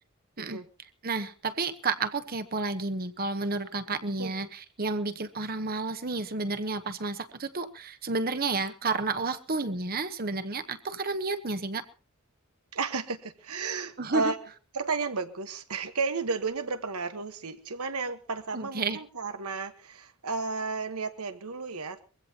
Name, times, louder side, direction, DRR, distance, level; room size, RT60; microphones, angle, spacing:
voice 1, 1.0-11.8 14.0-14.3 18.5-19.0, right 3 dB, 45° right, 10 dB, 1.1 m, -31 dB
voice 2, 12.7-14.4 14.7-22.1, right 4 dB, 90° right, 8 dB, 1.4 m, -33 dB
22.5 x 16.0 x 2.9 m, 0.34 s
head